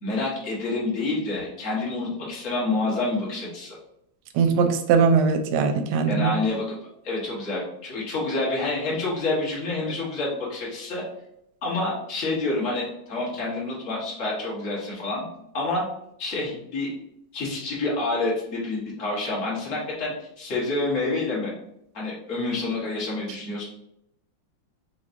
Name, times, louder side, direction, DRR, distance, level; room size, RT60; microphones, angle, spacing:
voice 1, 0.0-3.7 6.1-6.8 7.0-11.0 11.6-15.3 15.5-15.9 16.2-16.9 17.3-21.5 21.9-23.6, left 2 dB, 40° left, -5 dB, 1.8 m, -28 dB
voice 2, 4.4-6.3, right 5 dB, 90° right, 6 dB, 1.5 m, -20 dB
4.9 x 3.8 x 2.7 m, 0.76 s
omnidirectional pair, 2.3 m